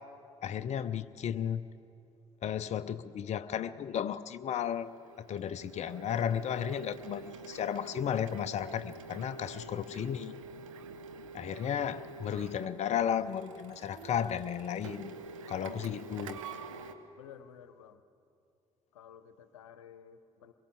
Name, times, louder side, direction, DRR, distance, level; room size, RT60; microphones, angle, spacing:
voice 1, 0.4-1.7 2.4-4.9 5.2-10.3 11.3-15.2 15.5-16.4, left 9 dB, 40° left, 12 dB, 0.7 m, -34 dB
Printer, 4.5-16.9, right 4 dB, 75° right, 1.1 m, -47 dB
voice 2, 17.2-18.0 18.9-20.5, left 8 dB, 75° left, 12 dB, 1.0 m, -53 dB
24.0 x 22.0 x 8.2 m, 2.6 s
figure-of-eight pair, 50°, 17 cm